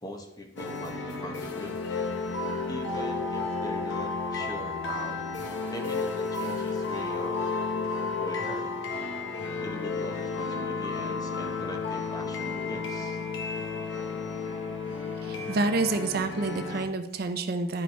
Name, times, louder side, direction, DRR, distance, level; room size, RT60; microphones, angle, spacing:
voice 1, 0.0-1.7 2.7-5.2 5.7-7.4 8.2-8.7 9.6-13.2, left 1 dB, 20° left, 3 dB, 0.9 m, -41 dB
sound 1, 0.6-16.8, left 4 dB, 75° left, 0.9 m, -32 dB
voice 2, 15.2-17.8, right 3 dB, 50° right, 8 dB, 0.6 m, -28 dB
10.0 x 5.2 x 3.3 m, 0.82 s
head